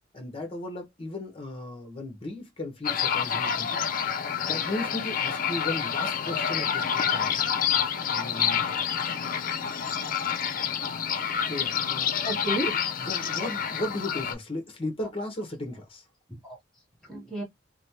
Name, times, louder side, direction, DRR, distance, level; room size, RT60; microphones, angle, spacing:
voice 1, 0.1-3.9 4.5-7.4 8.1-8.8 11.4-12.2 13.0-16.1, left 1 dB, 30° left, 1.0 m, -36 dB
sound 1, 2.8-14.3, left 8 dB, 45° left, 0.4 m, -28 dB
voice 2, 12.2-12.7 16.3-17.4, right 1 dB, 5° left, 1.0 m, -33 dB
3.1 x 2.1 x 2.8 m
head